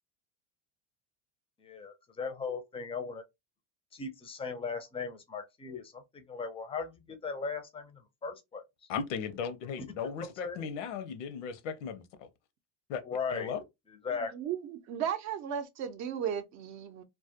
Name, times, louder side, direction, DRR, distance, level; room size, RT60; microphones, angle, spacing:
voice 1, 1.6-3.2 3.9-8.6 10.2-10.7 13.0-13.5 14.0-14.3, left 5 dB, 15° left, 0.5 m, -38 dB
voice 2, 8.9-12.3 12.9-13.0 13.3-13.6, left 6 dB, 85° left, 0.6 m, -36 dB
voice 3, 14.3-17.0, right 9 dB, 50° right, 0.5 m, -35 dB
2.2 x 2.1 x 2.7 m
supercardioid pair, 120°, 36 cm